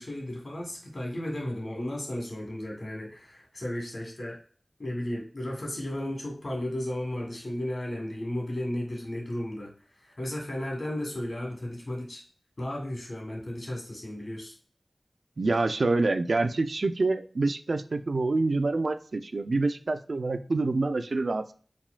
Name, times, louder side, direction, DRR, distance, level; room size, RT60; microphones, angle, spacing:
voice 1, 0.0-4.4 4.8-9.7 10.0-12.2 12.6-14.5, left 1 dB, 65° left, 0 dB, 1.6 m, -34 dB
voice 2, 15.4-21.5, right 3 dB, 85° right, 10 dB, 0.3 m, -26 dB
4.8 x 3.5 x 2.2 m, 0.44 s
wide cardioid pair, 60°, 0 cm